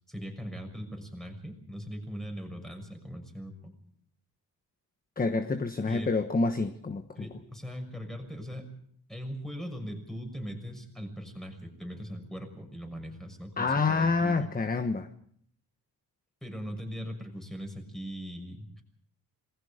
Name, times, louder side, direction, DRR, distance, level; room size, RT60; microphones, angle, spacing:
voice 1, 0.1-3.7 5.9-6.1 7.1-8.7 9.1-14.5 16.4-18.8, equal, ahead, 4 dB, 6.2 m, -40 dB
voice 2, 5.2-7.2 13.6-15.1, left 4 dB, 20° left, 9 dB, 1.3 m, -27 dB
27.5 x 21.0 x 5.1 m, 0.66 s
cardioid pair, 115°, 39 cm